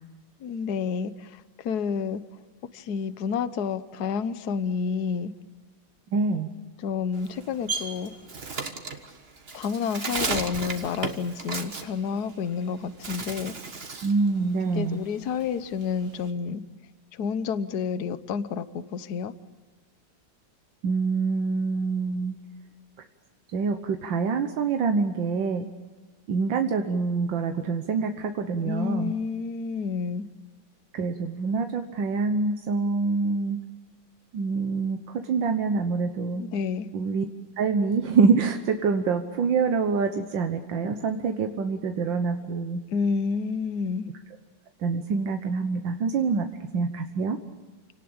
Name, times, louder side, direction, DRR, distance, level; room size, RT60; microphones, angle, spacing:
voice 1, 0.4-2.2 2.7-5.3 6.8-8.1 9.5-13.6 14.7-16.6 17.2-19.3 28.6-30.3 36.4-36.9 42.9-44.1, left 6 dB, 65° left, 13 dB, 1.4 m, -29 dB
voice 2, 6.1-6.5 14.0-15.0 20.8-22.4 23.5-25.7 26.3-29.1 30.9-33.6 34.3-35.0 35.3-36.4 36.9-37.3 37.6-42.8 44.8-46.5 46.7-47.4, right 4 dB, 90° right, 5 dB, 1.9 m, -25 dB
Bird, 7.1-12.6 12.9-14.2 14.6-16.3, right 4 dB, 35° right, 1.7 m, -34 dB
28.0 x 18.5 x 8.8 m, 1.3 s
omnidirectional pair, 2.0 m